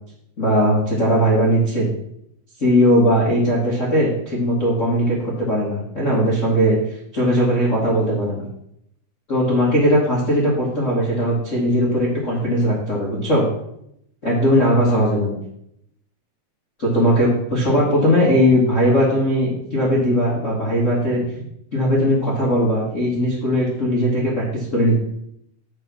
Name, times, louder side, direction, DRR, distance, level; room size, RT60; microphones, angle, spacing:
voice 1, 0.4-1.9 2.6-6.8 7.1-8.4 9.3-13.4 14.2-15.4 16.8-21.2 21.7-24.9, equal, 80° left, -6 dB, 0.6 m, -19 dB
7.6 x 5.0 x 6.1 m, 0.76 s
omnidirectional pair, 4.5 m